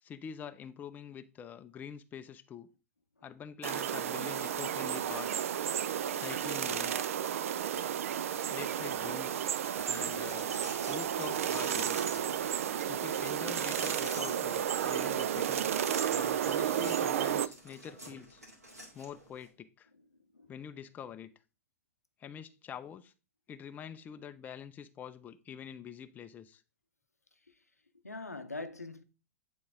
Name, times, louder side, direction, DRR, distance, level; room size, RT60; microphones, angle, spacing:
voice 1, 0.0-2.7 3.2-5.5 6.1-7.1 8.5-9.4 9.8-10.5 10.9-12.0 12.9-15.7 16.1-18.4 18.9-19.9 20.5-21.3 22.2-23.1 23.5-26.6, left 8 dB, 20° left, 0.4 m, -45 dB
sound 1, 3.6-17.5, right 9 dB, 65° right, 0.4 m, -32 dB
sound 2, 9.8-19.5, equal, 90° right, 2.0 m, -47 dB
voice 2, 28.0-29.0, left 3 dB, 90° left, 0.6 m, -42 dB
8.6 x 3.8 x 3.5 m
figure-of-eight pair, 95°, 8 cm